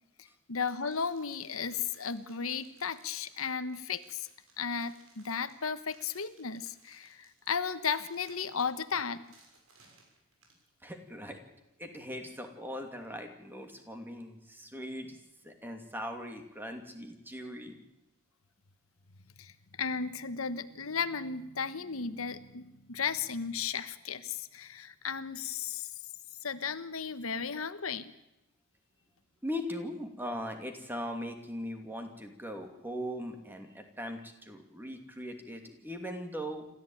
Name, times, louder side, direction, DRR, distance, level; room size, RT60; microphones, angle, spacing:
voice 1, 0.2-4.3 4.6-9.2 19.4-25.9 26.4-28.1, left 6 dB, 85° left, 12 dB, 1.2 m, -35 dB
sound 1, 0.6-10.6, right 3 dB, 85° right, 6.7 m, -63 dB
voice 2, 10.8-11.4 11.8-15.2 15.4-17.8 29.4-36.7, equal, 10° right, 5 dB, 2.7 m, -40 dB
27.5 x 13.5 x 9.2 m, 0.89 s
head